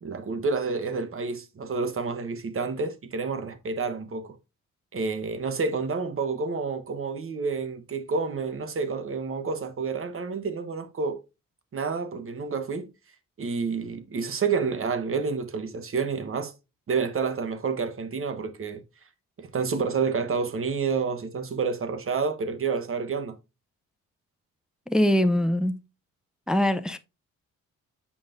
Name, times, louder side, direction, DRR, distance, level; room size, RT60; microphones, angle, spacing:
voice 1, 0.0-4.4 4.9-11.2 11.7-12.9 13.4-16.5 16.9-18.8 19.4-23.4, right 5 dB, 40° right, 1.1 m, -29 dB
voice 2, 24.9-25.8 26.5-27.0, equal, ahead, 0.4 m, -22 dB
7.0 x 5.3 x 2.5 m
cardioid pair, 85°, 32 cm